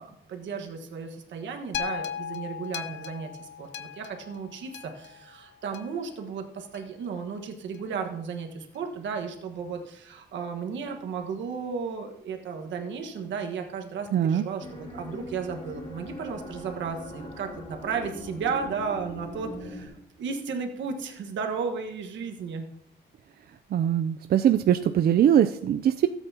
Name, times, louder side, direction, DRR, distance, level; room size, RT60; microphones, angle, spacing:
voice 1, 0.0-22.7, right 5 dB, 85° right, 4 dB, 1.4 m, -34 dB
sound 1, 1.7-6.1 6.7-6.8, left 9 dB, 80° left, 0.6 m, -37 dB
voice 2, 14.1-14.4 23.7-26.1, right 10 dB, 55° right, 9 dB, 0.4 m, -22 dB
sound 2, 14.6-19.9, left 1 dB, 35° left, 3.3 m, -41 dB
16.5 x 8.2 x 2.8 m, 0.76 s
cardioid pair, 105°, 19 cm